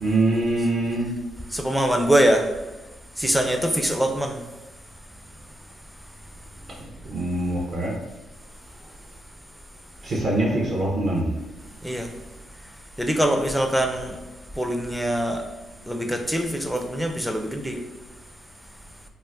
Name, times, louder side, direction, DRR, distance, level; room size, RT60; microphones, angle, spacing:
voice 1, 0.0-1.1 6.8-8.0 10.0-11.3, right 2 dB, 50° right, -3 dB, 0.6 m, -24 dB
voice 2, 1.5-2.5 3.2-4.4 11.8-12.1 12.6-14.2 14.5-15.5 15.8-17.8, right 1 dB, 5° right, 4 dB, 0.4 m, -23 dB
2.4 x 2.4 x 3.3 m, 1.1 s
cardioid pair, 90°, 0 cm